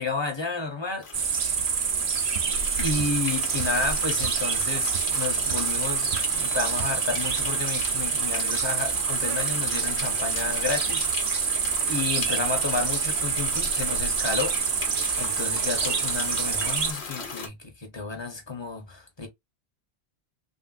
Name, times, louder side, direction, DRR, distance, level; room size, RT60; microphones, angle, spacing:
voice 1, 0.0-1.4 2.8-11.5 11.9-14.6 15.2-19.3, left 4 dB, 25° left, 1.0 m, -31 dB
sound 1, 1.0-17.5, left 4 dB, 80° left, 1.2 m, -37 dB
sound 2, 1.1-16.9, right 6 dB, 50° right, 0.5 m, -27 dB
sound 3, 2.3-2.5 3.0-3.2 3.6-3.8 4.2-4.5 4.7-5.2 5.5-5.6 6.1-6.4 6.8-7.0, right 6 dB, 70° right, 0.9 m, -37 dB
3.2 x 2.7 x 2.4 m
omnidirectional pair, 1.1 m